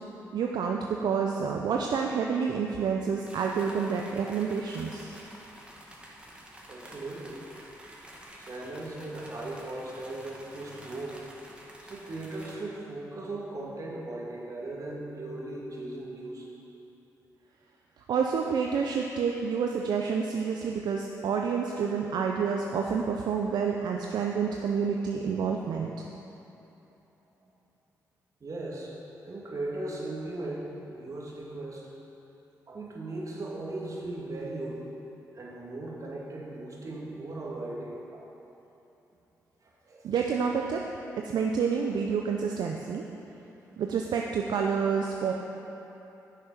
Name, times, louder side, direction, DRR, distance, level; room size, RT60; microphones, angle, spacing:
voice 1, 0.3-5.1 18.1-25.9 40.0-40.8 41.2-43.0 43.8-45.3, right 6 dB, 70° right, 1 dB, 0.6 m, -28 dB
sound 1, 3.3-12.6, right 1 dB, 15° right, 1.9 m, -49 dB
voice 2, 6.7-7.6 8.3-11.2 11.8-16.5 27.4-27.5 28.4-28.9 29.2-31.9 32.7-34.9 35.3-38.3 39.6-40.1, right 2 dB, 50° right, -3 dB, 2.2 m, -38 dB
10.0 x 6.6 x 5.8 m, 3.0 s
supercardioid pair, 50°, 7 cm